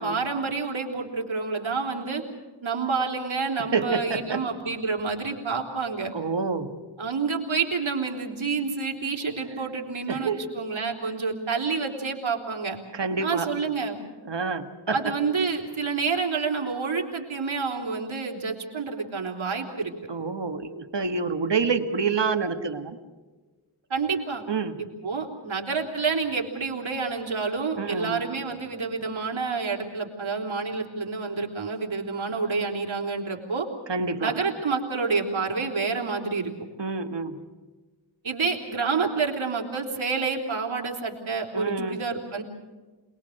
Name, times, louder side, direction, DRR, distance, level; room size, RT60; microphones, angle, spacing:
voice 1, 0.0-2.2 2.6-6.1 7.0-12.8 13.2-14.0 14.9-19.9 23.9-24.4 24.8-33.7 34.2-36.5 38.2-42.4, right 4 dB, 85° right, 1 dB, 3.8 m, -28 dB
voice 2, 3.7-4.4 6.1-6.7 10.1-10.4 12.9-13.5 14.2-15.0 20.1-23.0 24.5-24.8 27.8-28.3 33.9-34.4 36.8-37.4 41.5-42.0, right 4 dB, 65° right, 8 dB, 1.7 m, -28 dB
27.5 x 21.0 x 6.6 m, 1.3 s
wide cardioid pair, 100°, 46 cm